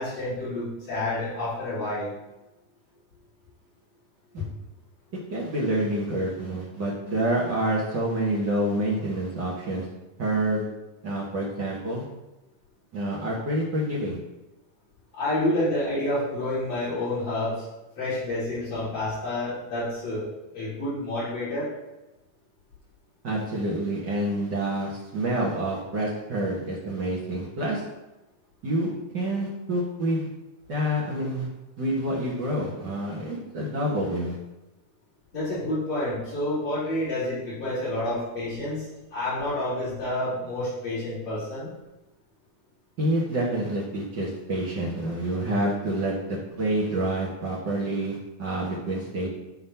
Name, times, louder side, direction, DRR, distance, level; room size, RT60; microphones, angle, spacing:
voice 1, 0.0-2.1 4.4-4.5 15.1-17.6 18.0-20.2 20.5-21.7 35.3-41.7, left 1 dB, 55° left, -11 dB, 4.1 m, -29 dB
voice 2, 5.3-9.9 10.2-10.7 11.0-12.0 12.9-14.2 23.2-27.8 28.6-30.3 30.7-31.5 31.8-34.4 43.0-49.3, right 1 dB, 50° right, -4 dB, 1.3 m, -27 dB
11.5 x 3.9 x 5.7 m, 1.0 s
omnidirectional pair, 3.8 m